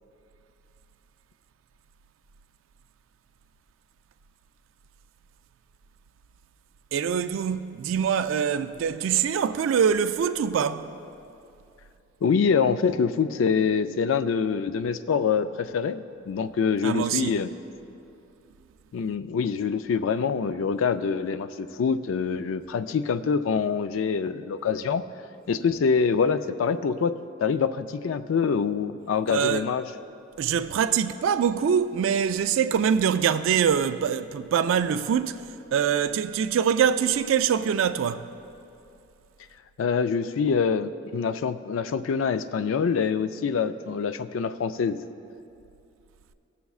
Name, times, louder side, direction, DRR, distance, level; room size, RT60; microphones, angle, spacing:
voice 1, 6.9-10.9 16.8-17.3 29.3-29.6 30.4-35.4 35.7-38.2, right 7 dB, 80° right, 0.3 m, -24 dB
voice 2, 12.2-17.5 18.9-25.0 25.5-29.8 39.8-45.0, left 6 dB, 80° left, 0.3 m, -25 dB
16.5 x 7.0 x 2.4 m
head